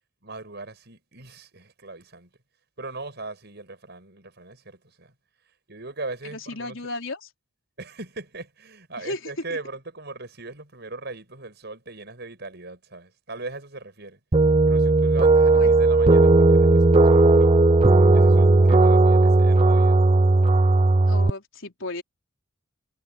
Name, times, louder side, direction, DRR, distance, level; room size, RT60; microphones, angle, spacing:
voice 1, 0.2-2.3 2.8-5.1 5.7-6.8 7.8-14.2 14.7-17.7 18.1-20.0, right 3 dB, 55° right, 6.9 m, -39 dB
voice 2, 6.3-7.3 9.0-9.2 15.5-15.7 21.1-22.0, left 2 dB, 70° left, 4.4 m, -34 dB
sound 1, 14.3-21.3, right 2 dB, 30° right, 0.6 m, -16 dB
head